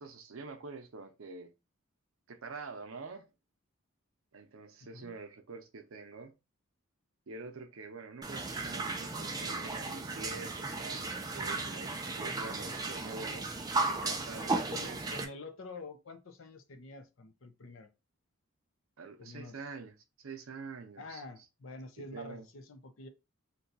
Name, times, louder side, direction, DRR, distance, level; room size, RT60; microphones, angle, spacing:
voice 1, 0.0-1.5 2.3-3.3 4.3-6.3 7.3-15.0 19.0-21.2 22.0-22.5, right 4 dB, 75° right, 0.6 m, -46 dB
sound 1, 8.2-15.2, right 3 dB, 15° right, 0.4 m, -35 dB
voice 2, 14.3-17.9 19.2-19.6 21.0-23.1, left 3 dB, 65° left, 0.6 m, -47 dB
2.7 x 2.3 x 3.9 m
head